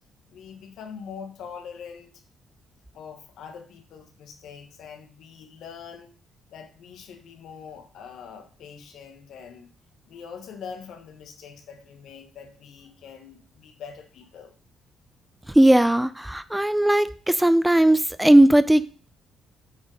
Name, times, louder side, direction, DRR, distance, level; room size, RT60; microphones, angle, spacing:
voice 1, 0.3-2.2 2.9-6.1 6.5-9.7 10.1-14.5, left 6 dB, 75° left, 1.2 m, -43 dB
voice 2, 15.5-18.9, right 1 dB, 5° right, 0.4 m, -18 dB
7.2 x 3.8 x 4.8 m
cardioid pair, 90°, 0 cm